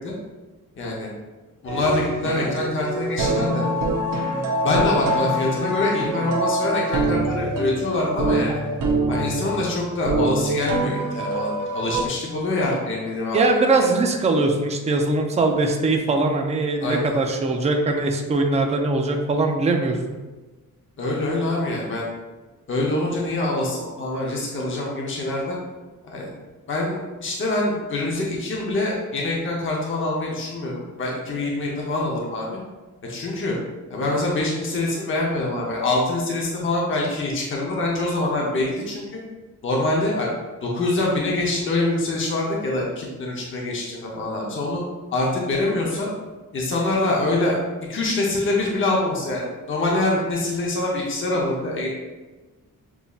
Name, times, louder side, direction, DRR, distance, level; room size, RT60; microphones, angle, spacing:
voice 1, 0.8-1.1 1.6-3.6 4.6-8.6 9.1-13.9 16.8-17.1 21.0-22.1 22.7-25.6 26.1-26.3 26.7-32.5 33.1-33.6 33.9-39.2 39.6-40.3 40.6-44.8 45.1-46.1 46.5-47.6 47.9-51.9, left 2 dB, 35° left, -3 dB, 0.7 m, -25 dB
sound 1, 1.7-12.1, right 1 dB, 85° right, 0.8 m, -25 dB
voice 2, 13.3-20.0, right 3 dB, 20° right, 3 dB, 0.3 m, -21 dB
7.0 x 2.7 x 2.4 m, 1.2 s
wide cardioid pair, 180°, 33 cm